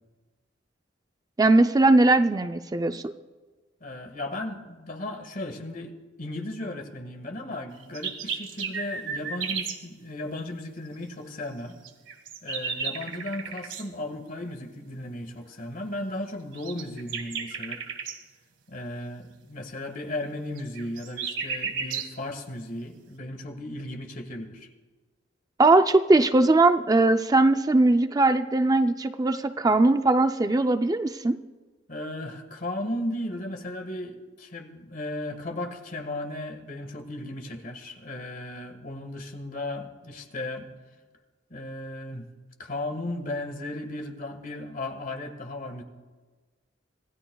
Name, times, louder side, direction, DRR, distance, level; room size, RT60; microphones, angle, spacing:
voice 1, 1.4-3.1 25.6-31.4, right 2 dB, 20° right, 8 dB, 0.4 m, -20 dB
voice 2, 3.8-11.8 12.4-17.8 18.7-24.7 31.9-40.7 41.5-42.3 42.6-45.8, left 1 dB, 45° left, 5 dB, 1.7 m, -35 dB
sound 1, 7.7-9.8 11.8-13.9 16.5-18.2 20.6-22.1, right 6 dB, 85° right, 1.7 m, -33 dB
26.0 x 16.5 x 2.3 m, 1.3 s
head